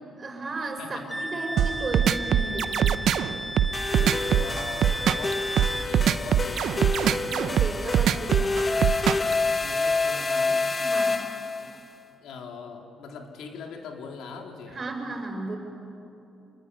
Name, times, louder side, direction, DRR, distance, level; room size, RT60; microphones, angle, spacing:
voice 1, 0.2-3.1 7.3-8.7 10.8-11.2 14.7-15.6, right 2 dB, 35° right, 3 dB, 6.3 m, -34 dB
voice 2, 0.8-1.2 3.9-7.0 7.9-8.1 9.6-10.7 11.6-11.8 12.2-14.8, left 4 dB, 80° left, 2 dB, 3.2 m, -41 dB
Wind instrument woodwind instrument, 1.1-5.9, equal, ahead, 2.1 m, -34 dB
sound 1, 1.6-9.3, right 10 dB, 75° right, 0.8 m, -22 dB
sound 2, 3.7-11.8, left 3 dB, 25° left, 1.1 m, -28 dB
27.5 x 22.0 x 9.6 m, 2.9 s
cardioid pair, 90°, 0 cm